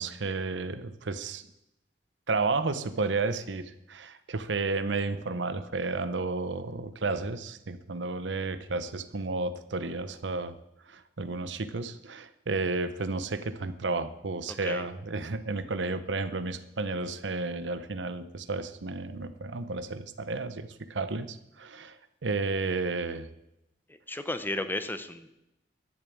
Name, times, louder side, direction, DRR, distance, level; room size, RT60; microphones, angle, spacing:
voice 1, 0.0-1.4 2.3-10.5 10.9-23.3, right 3 dB, 75° right, 12 dB, 0.8 m, -32 dB
voice 2, 23.9-25.4, left 1 dB, 10° left, 10 dB, 0.8 m, -34 dB
12.0 x 7.1 x 8.5 m, 0.86 s
head